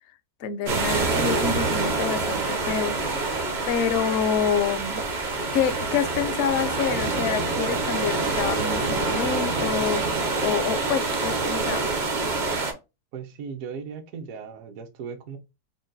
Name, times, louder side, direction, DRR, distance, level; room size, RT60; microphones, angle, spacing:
voice 1, 0.4-3.4 3.7-5.0 5.5-10.0 10.4-11.9, left 7 dB, 65° left, 0.7 m, -27 dB
sound 1, 0.7-12.7, right 3 dB, 45° right, 0.6 m, -26 dB
voice 2, 13.1-15.4, right 6 dB, 65° right, 1.1 m, -37 dB
3.8 x 2.2 x 3.9 m
omnidirectional pair, 1.7 m